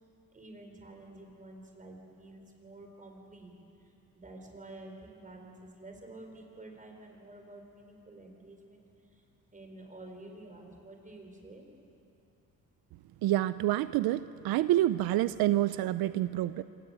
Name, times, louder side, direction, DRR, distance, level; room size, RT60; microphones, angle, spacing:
voice 1, 0.3-3.5 3.8-8.8 9.1-9.2 9.5-11.6, right 2 dB, 20° right, 2 dB, 4.6 m, -50 dB
voice 2, 13.2-16.6, right 14 dB, 85° right, 14 dB, 0.6 m, -28 dB
26.0 x 19.5 x 8.1 m, 2.7 s
cardioid pair, 115°, 35 cm